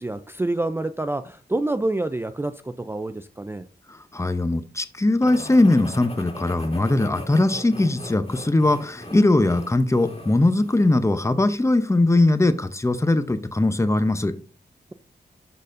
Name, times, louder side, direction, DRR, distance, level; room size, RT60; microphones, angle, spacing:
voice 1, 0.0-3.7, right 2 dB, 15° right, 0.4 m, -27 dB
voice 2, 3.9-14.3, left 2 dB, 15° left, 0.7 m, -20 dB
sound 1, 5.2-11.0, left 1 dB, 35° left, 2.3 m, -39 dB
12.0 x 4.0 x 2.6 m
cardioid pair, 70°, 17 cm